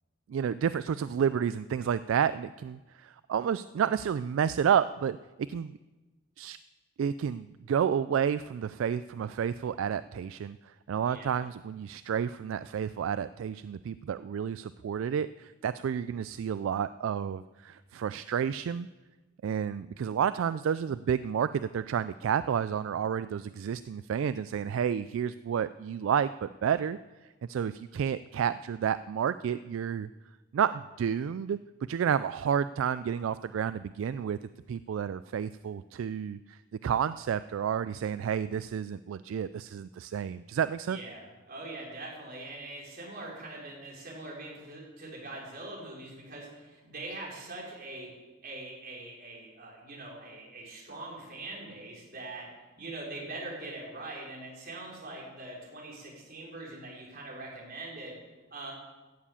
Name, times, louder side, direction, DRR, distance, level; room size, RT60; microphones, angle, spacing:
voice 1, 0.3-5.8 6.4-6.6 7.0-18.9 19.4-30.1 30.5-31.6 31.9-34.4 34.7-41.0, right 8 dB, 75° right, 14 dB, 0.3 m, -30 dB
voice 2, 11.1-11.4 40.9-48.1 48.4-52.5 52.8-58.1 58.5-58.7, right 2 dB, 50° right, -3 dB, 4.5 m, -42 dB
14.0 x 7.4 x 8.5 m, 1.2 s
head